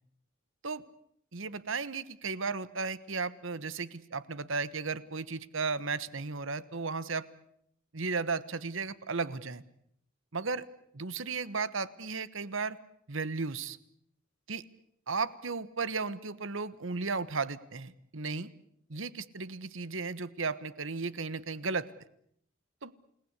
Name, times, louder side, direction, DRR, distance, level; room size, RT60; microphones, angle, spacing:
voice 1, 1.3-7.2 7.9-9.6 10.3-10.7 10.9-12.8 13.1-13.8 14.5-14.6 15.1-18.5 18.9-21.9 22.8-22.9, right 4 dB, 65° right, 16 dB, 1.2 m, -35 dB
29.5 x 19.0 x 8.2 m, 0.70 s
head